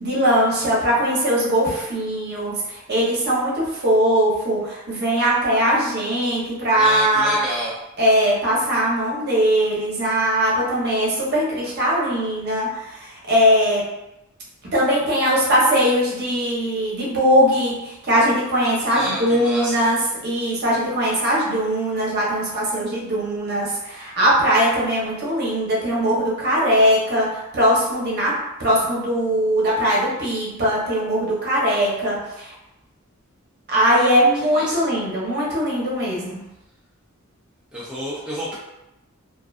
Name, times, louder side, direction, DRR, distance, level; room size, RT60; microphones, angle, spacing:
voice 1, 0.0-7.3 8.0-13.8 14.7-20.0 20.2-32.5 33.7-36.4, equal, 50° right, -5 dB, 0.8 m, -20 dB
voice 2, 6.8-7.7 18.9-19.8 34.5-34.9 37.7-38.5, right 1 dB, 5° right, -8 dB, 0.4 m, -29 dB
2.4 x 2.3 x 2.3 m, 0.91 s
head